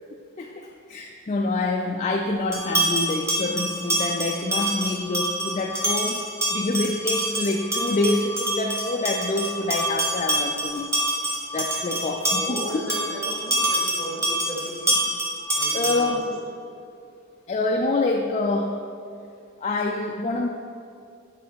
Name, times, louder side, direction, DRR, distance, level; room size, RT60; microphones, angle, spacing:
voice 1, 0.4-6.2 6.5-10.9 11.5-12.7 15.7-16.2 17.5-18.8 19.6-20.5, left 2 dB, 30° left, 1 dB, 0.3 m, -26 dB
sound 1, 2.5-16.2, right 1 dB, 10° right, 0.9 m, -26 dB
voice 2, 11.9-15.0 15.5-16.4, equal, 60° right, -4 dB, 1.8 m, -35 dB
9.4 x 4.3 x 4.6 m, 2.6 s
head